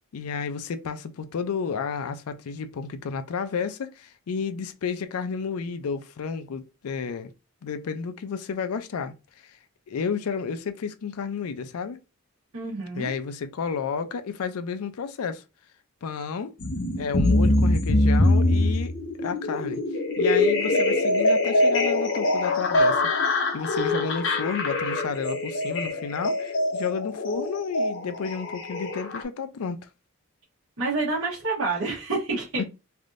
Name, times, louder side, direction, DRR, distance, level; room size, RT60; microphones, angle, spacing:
voice 1, 0.1-7.3 7.6-9.1 9.9-12.0 13.0-15.4 16.0-16.5 17.0-18.9 19.2-19.8 20.2-23.0 23.5-29.9 32.6-32.7, left 6 dB, 85° left, 0.4 m, -31 dB
voice 2, 12.5-13.1 30.8-32.6, right 3 dB, 80° right, 1.1 m, -28 dB
sound 1, 16.6-29.2, left 2 dB, 55° left, 0.8 m, -23 dB
3.4 x 2.6 x 2.5 m
head